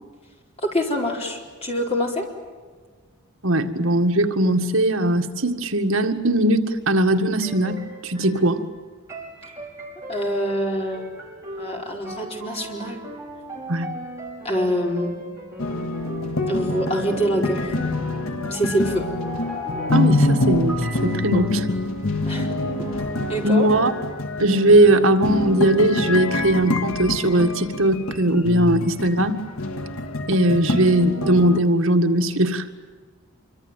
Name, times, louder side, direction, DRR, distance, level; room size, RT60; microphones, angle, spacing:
voice 1, 0.6-2.3 10.1-11.0 11.6-13.0 14.4-15.1 16.5-17.7 18.5-19.1 22.2-22.6 23.3-23.7, equal, 25° left, 0 dB, 4.8 m, -25 dB
voice 2, 3.4-8.6 13.7-13.9 19.9-21.7 23.4-23.9 24.4-29.4 30.3-32.7, right 1 dB, 70° right, 5 dB, 1.9 m, -19 dB
sound 1, 7.4-8.5 9.1-20.8 22.4-23.7, right 1 dB, 15° right, 5.6 m, -38 dB
sound 2, 15.6-31.6, left 2 dB, 75° left, 1.6 m, -26 dB
sound 3, 18.5-22.5, left 1 dB, ahead, 5.6 m, -36 dB
26.0 x 24.5 x 9.2 m, 1.5 s
head